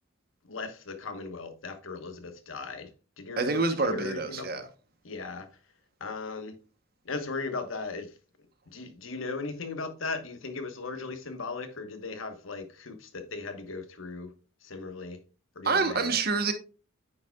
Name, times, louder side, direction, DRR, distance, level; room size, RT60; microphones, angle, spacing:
voice 1, 0.5-2.9 3.2-4.6 5.0-5.5 6.0-6.6 7.0-8.1 8.7-14.3 14.6-15.2 15.5-16.2, left 4 dB, 80° left, 1.2 m, -37 dB
voice 2, 3.4-4.7 15.6-16.5, right 4 dB, 50° right, 0.9 m, -27 dB
9.0 x 6.5 x 2.3 m
head